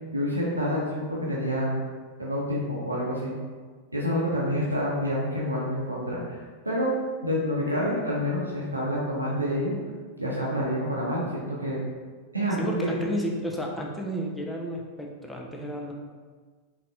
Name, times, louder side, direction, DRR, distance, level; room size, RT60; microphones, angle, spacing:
voice 1, 0.1-1.8 2.2-3.3 3.9-7.0 7.2-9.8 10.2-11.8 12.3-12.9, equal, 85° right, -5 dB, 0.7 m, -28 dB
voice 2, 12.6-15.9, equal, 5° left, 0 dB, 0.5 m, -32 dB
3.9 x 2.8 x 2.3 m, 1.5 s
figure-of-eight pair, 90°, 0 cm